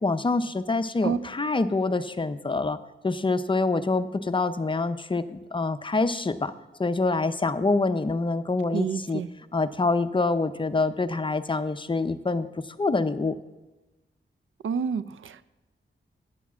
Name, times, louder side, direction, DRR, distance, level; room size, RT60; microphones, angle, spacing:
voice 1, 0.0-2.8 3.0-6.5 6.8-9.2 9.5-12.5 12.8-13.3, left 3 dB, 25° left, 11 dB, 0.5 m, -26 dB
voice 2, 8.7-9.3 14.6-15.4, right 6 dB, 85° right, 15 dB, 0.4 m, -29 dB
9.2 x 7.1 x 7.2 m, 1.1 s
wide cardioid pair, 130°, 20 cm